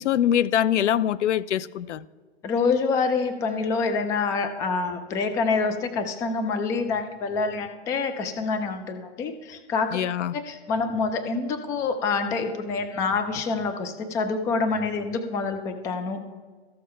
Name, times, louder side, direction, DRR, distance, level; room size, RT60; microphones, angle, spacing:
voice 1, 0.0-2.0 9.9-10.4, left 10 dB, 80° left, 0.5 m, -23 dB
voice 2, 2.4-10.0 10.3-16.2, left 4 dB, 10° left, 0.3 m, -26 dB
13.5 x 6.7 x 5.5 m
hypercardioid pair, 130°, 35 cm